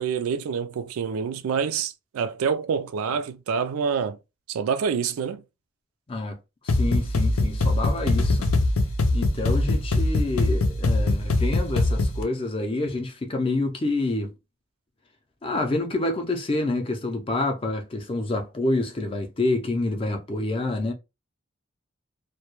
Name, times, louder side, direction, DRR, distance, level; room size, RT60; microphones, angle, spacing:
voice 1, 0.0-4.2 4.5-5.4, right 6 dB, 90° right, 0.3 m, -27 dB
voice 2, 6.1-6.4 6.6-8.5 9.1-14.3 15.4-20.9, left 2 dB, 25° left, 0.4 m, -27 dB
sound 1, 6.7-12.2, left 2 dB, 90° left, 0.5 m, -22 dB
2.2 x 2.1 x 2.9 m
head